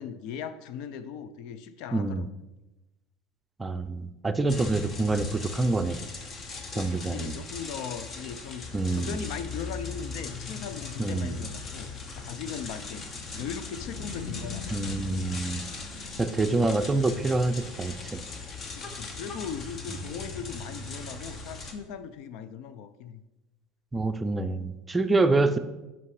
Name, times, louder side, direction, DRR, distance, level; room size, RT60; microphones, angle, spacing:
voice 1, 0.0-2.3 6.7-8.7 8.9-11.9 12.2-15.2 18.8-23.2 25.5-25.6, left 7 dB, 65° left, 12 dB, 0.5 m, -39 dB
voice 2, 1.9-2.3 3.6-6.0 6.7-7.3 8.7-9.2 11.0-11.5 14.7-15.6 16.2-18.2 23.9-25.6, right 2 dB, 15° right, 10 dB, 0.5 m, -26 dB
sound 1, 4.5-21.7, left 4 dB, 35° left, 0.9 m, -39 dB
5.6 x 5.3 x 4.8 m, 1.0 s
supercardioid pair, 100°, 0 cm